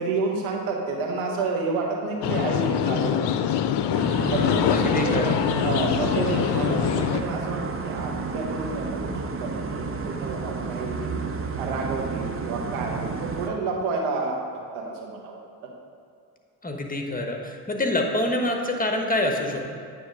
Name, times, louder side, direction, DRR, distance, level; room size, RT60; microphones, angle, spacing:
voice 1, 0.0-3.6 4.3-11.2 11.6-15.7, right 3 dB, 80° right, 1 dB, 1.2 m, -30 dB
sound 1, 2.2-7.2, left 10 dB, 55° left, 0.6 m, -24 dB
sound 2, 3.9-13.5, right 4 dB, 25° right, 0.8 m, -31 dB
voice 2, 4.7-5.3 16.6-19.6, left 1 dB, 15° left, 2 dB, 1.2 m, -26 dB
9.3 x 3.5 x 6.5 m, 2.4 s
supercardioid pair, 55°, 49 cm